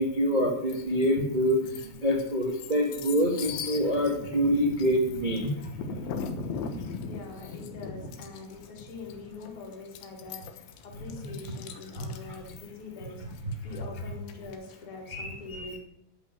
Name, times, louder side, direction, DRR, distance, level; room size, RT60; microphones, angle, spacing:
voice 1, 0.0-5.7 12.0-12.4 15.1-15.8, equal, 70° right, 1 dB, 0.4 m, -26 dB
sound 1, 0.7-1.1 1.5-14.8, left 5 dB, 70° left, 2.7 m, -40 dB
voice 2, 7.0-10.6 11.0-15.8, left 4 dB, 35° left, -1 dB, 3.8 m, -43 dB
12.0 x 7.6 x 9.4 m, 0.77 s
omnidirectional pair, 4.8 m